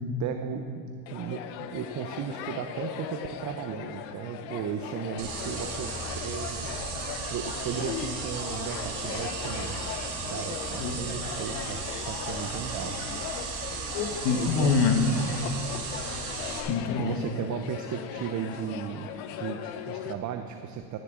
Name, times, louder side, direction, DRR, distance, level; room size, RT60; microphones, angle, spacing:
voice 1, 0.2-1.4 1.7-5.9 6.2-6.7 7.3-9.8 10.3-13.0 14.4-14.7 17.0-19.1 19.4-21.0, right 8 dB, 35° right, 6 dB, 0.6 m, -35 dB
sound 1, 1.1-20.1, left 9 dB, 85° left, 0.9 m, -38 dB
sound 2, 5.2-16.6, right 5 dB, 85° right, 2.7 m, -36 dB
voice 2, 13.9-15.3 16.7-17.2, left 5 dB, 55° left, 5 dB, 1.3 m, -25 dB
14.5 x 10.5 x 3.7 m, 2.4 s
supercardioid pair, 110°, 50 cm